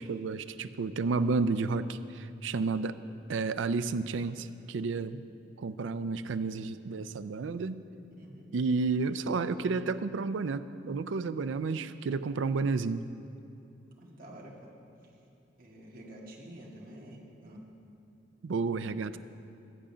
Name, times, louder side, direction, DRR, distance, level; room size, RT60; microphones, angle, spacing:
voice 1, 0.0-3.0 3.3-5.2 5.6-7.8 8.5-13.1 18.4-19.2, right 4 dB, 80° right, 12 dB, 0.4 m, -31 dB
voice 2, 8.1-8.5 14.0-14.7 15.6-17.7, right 1 dB, 50° right, -3 dB, 1.7 m, -48 dB
13.0 x 5.0 x 8.4 m, 2.7 s
head